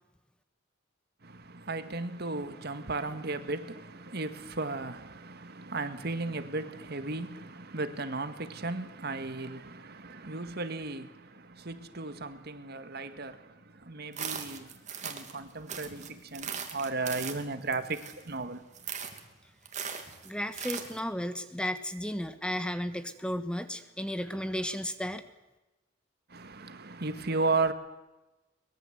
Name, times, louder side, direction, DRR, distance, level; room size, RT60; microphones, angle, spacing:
voice 1, 1.2-18.6 26.3-27.7, right 3 dB, 60° right, 1.8 m, -35 dB
sound 1, 14.1-15.4 15.7-18.4 18.7-19.2 19.6-21.0, right 7 dB, 40° right, 2.9 m, -39 dB
voice 2, 20.2-25.2, equal, 5° left, 1.4 m, -34 dB
24.0 x 22.0 x 8.1 m
head